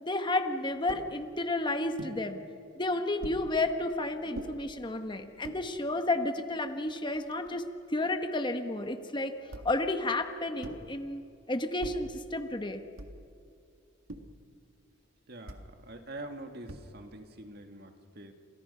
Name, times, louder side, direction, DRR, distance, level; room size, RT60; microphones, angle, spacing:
voice 1, 0.0-2.4 2.8-7.6 7.9-9.3 9.6-11.2 11.5-12.8, left 2 dB, 25° left, 7 dB, 1.1 m, -31 dB
sound 1, 0.9-1.1 2.0-2.2 3.2-3.5 4.3-4.5 5.2-5.6 6.4-6.5 6.7-7.7 9.5-9.9 10.6-10.9 11.8-12.1 13.0-13.3 14.1-14.4 15.5-15.7 16.7-17.1, right 1 dB, 80° right, 1.9 m, -43 dB
voice 2, 15.3-18.3, right 1 dB, 50° right, 5 dB, 2.0 m, -45 dB
29.0 x 28.0 x 5.5 m, 2.5 s
head